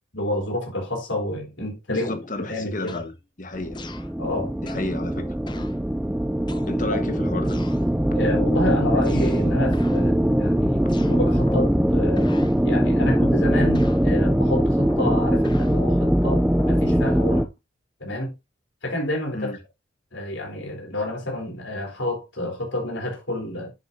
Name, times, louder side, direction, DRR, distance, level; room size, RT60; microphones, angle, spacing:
voice 1, 0.1-3.0 4.2-4.6 8.1-12.3 12.6-17.5 18.0-18.3 18.8-19.5 20.1-23.7, left 1 dB, 70° left, 4.0 m, -29 dB
voice 2, 1.9-3.1 3.4-3.8 4.6-5.3 6.7-7.6 19.3-19.6, left 2 dB, 40° left, 1.4 m, -31 dB
sound 1, 2.0-2.4 2.9-3.1 3.7-4.1 4.7-4.9 5.5-5.8 6.5-7.0 7.4-7.8 8.3-8.6 9.0-9.5 9.7-10.1 10.9-11.8 12.2-12.6 13.2-13.5 13.7-14.1 14.9-15.8 16.6-16.9, left 2 dB, 25° left, 0.7 m, -39 dB
sound 2, 3.5-17.4, equal, 5° right, 0.4 m, -21 dB
10.5 x 8.2 x 2.8 m
head